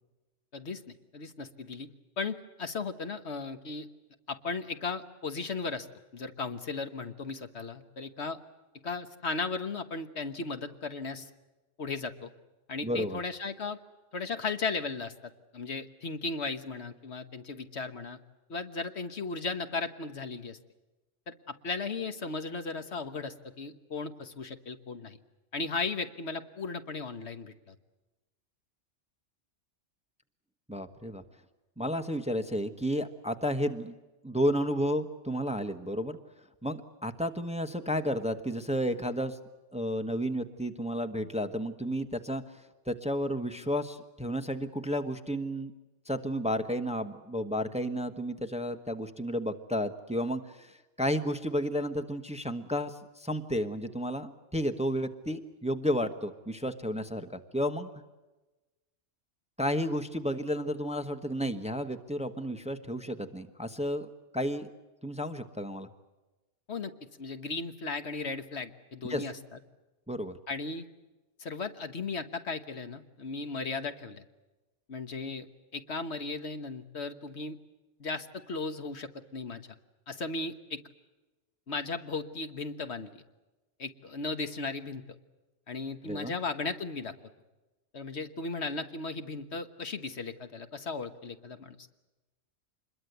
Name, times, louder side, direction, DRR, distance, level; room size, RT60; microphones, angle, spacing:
voice 1, 1.1-1.9 2.2-3.9 4.3-5.9 6.1-8.4 8.8-11.3 11.8-12.3 12.7-13.8 14.1-18.2 18.5-20.6 21.3-25.2 25.5-27.7 66.7-66.9 67.2-69.6 70.5-70.8 71.4-74.2 74.9-75.5 75.7-77.6 78.0-79.6 80.1-80.8 81.7-83.2 83.8-85.0 85.7-87.1 87.9-91.7, left 4 dB, 65° left, 9 dB, 1.5 m, -36 dB
voice 2, 12.8-13.2 30.7-31.2 31.8-33.9 34.2-36.2 36.6-39.4 39.7-42.4 42.9-45.7 46.1-50.7 51.0-57.9 59.6-64.7 65.0-65.9 69.1-69.2 70.1-70.4 86.0-86.3, equal, 5° right, 8 dB, 1.1 m, -32 dB
26.5 x 22.0 x 8.0 m, 1.1 s
omnidirectional pair, 1.2 m